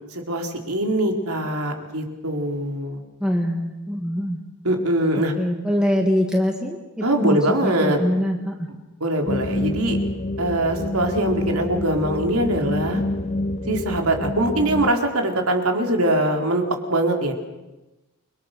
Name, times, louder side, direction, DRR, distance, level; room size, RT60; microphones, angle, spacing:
voice 1, 0.1-3.0 4.6-5.3 7.0-8.0 9.0-10.0 10.4-13.0 13.7-16.6 16.9-17.3, right 1 dB, 75° right, 3 dB, 4.0 m, -22 dB
voice 2, 3.2-4.4 5.4-8.7, equal, 5° right, 0 dB, 1.9 m, -23 dB
sound 1, 9.3-14.9, left 1 dB, 30° left, 0.8 m, -27 dB
29.5 x 24.0 x 6.8 m, 1.1 s
head